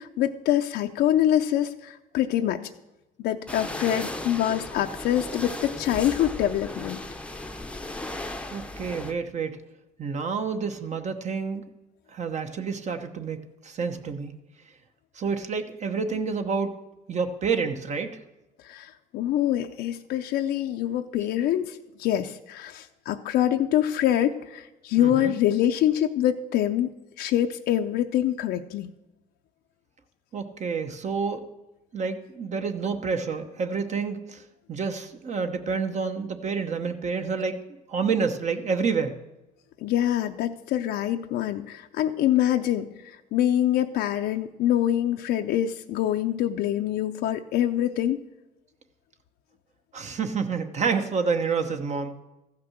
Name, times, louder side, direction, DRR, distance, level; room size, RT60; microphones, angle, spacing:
voice 1, 0.0-2.7 3.2-7.0 18.6-26.9 27.2-28.9 39.8-48.2, left 11 dB, 75° left, 5 dB, 0.6 m, -25 dB
sound 1, 3.5-9.1, left 2 dB, 5° left, 0.7 m, -36 dB
voice 2, 8.5-9.6 10.0-11.6 12.1-14.4 15.1-16.7 17.1-18.1 25.0-25.3 30.3-31.4 31.9-34.4 34.7-37.6 37.9-39.1 49.9-52.2, right 5 dB, 45° right, 7 dB, 1.0 m, -28 dB
14.5 x 6.0 x 6.3 m, 1.0 s
cardioid pair, 110°, 17 cm